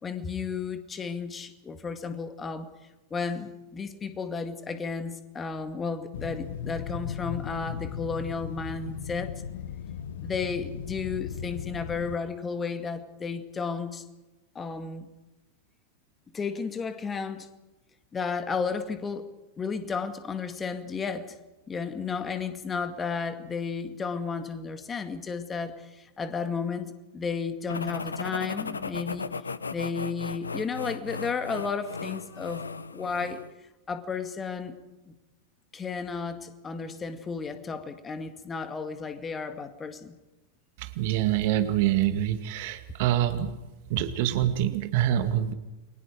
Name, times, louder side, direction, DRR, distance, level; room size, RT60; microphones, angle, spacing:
voice 1, 0.0-2.7 3.1-9.3 10.2-14.0 14.6-15.1 16.3-17.5 18.1-19.3 19.6-21.3 21.7-29.3 29.7-33.4 33.9-34.8 35.1-35.2 35.7-40.1, left 5 dB, 20° left, 8 dB, 2.1 m, -33 dB
sound 1, 6.1-12.2, left 8 dB, 60° left, 1.4 m, -37 dB
sound 2, 27.7-33.5, left 4 dB, 75° left, 0.9 m, -36 dB
voice 2, 40.8-43.6 43.9-45.5, right 12 dB, 50° right, 8 dB, 2.1 m, -26 dB
30.0 x 23.5 x 5.0 m, 1.0 s
figure-of-eight pair, 90°, 0 cm